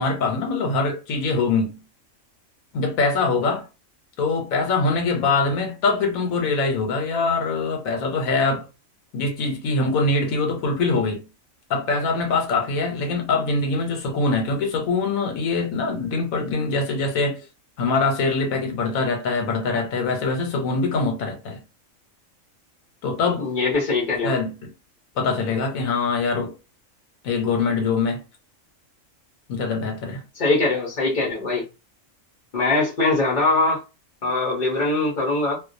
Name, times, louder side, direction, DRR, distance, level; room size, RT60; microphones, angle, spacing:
voice 1, 0.0-1.8 2.7-3.6 4.2-8.7 9.1-11.3 11.7-17.5 17.8-21.6 23.0-23.5 24.2-24.6 25.2-26.5 27.2-28.2 29.5-30.2, left 3 dB, 85° left, 1.1 m, -23 dB
voice 2, 23.4-24.3 30.3-31.6 32.5-33.8 34.2-35.6, left 2 dB, 45° left, 0.7 m, -22 dB
2.3 x 2.2 x 2.5 m
omnidirectional pair, 1.4 m